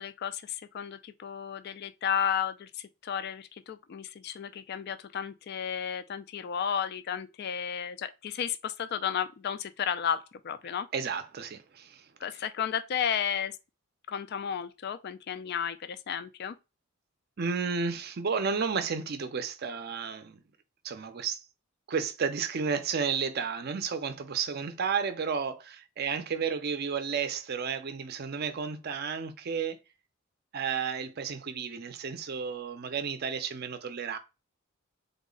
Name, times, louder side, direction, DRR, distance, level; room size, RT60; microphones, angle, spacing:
voice 1, 0.0-10.9 12.2-13.6 14.1-16.6, left 8 dB, 45° left, 0.3 m, -33 dB
voice 2, 10.9-12.1 17.4-20.4 20.8-21.4 21.9-29.8 30.5-34.2, right 6 dB, 45° right, 0.5 m, -32 dB
3.6 x 2.1 x 3.8 m
head